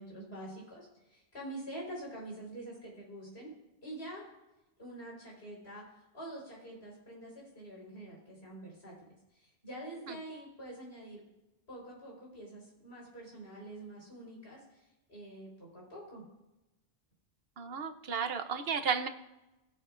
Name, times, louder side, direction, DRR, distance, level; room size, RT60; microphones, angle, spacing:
voice 1, 0.0-3.5 3.8-4.3 4.8-8.9 9.3-11.2 11.7-16.2, right 1 dB, 80° left, -3 dB, 4.5 m, -46 dB
voice 2, 17.6-19.1, right 6 dB, 70° right, 8 dB, 1.0 m, -33 dB
19.5 x 7.6 x 2.5 m, 0.99 s
omnidirectional pair, 1.0 m